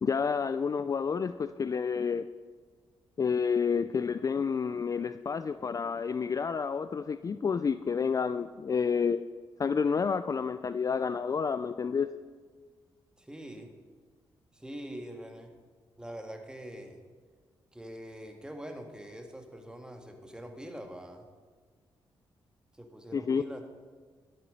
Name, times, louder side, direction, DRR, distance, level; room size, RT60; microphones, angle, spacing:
voice 1, 0.0-2.3 3.2-9.2 9.6-12.1 23.1-23.4, left 6 dB, 40° left, 13 dB, 0.4 m, -29 dB
voice 2, 13.2-13.7 14.5-15.5 16.0-17.0 17.7-21.3 22.7-23.6, equal, 10° right, 4 dB, 1.8 m, -44 dB
12.0 x 8.6 x 5.3 m, 1.5 s
cardioid pair, 60°, 9 cm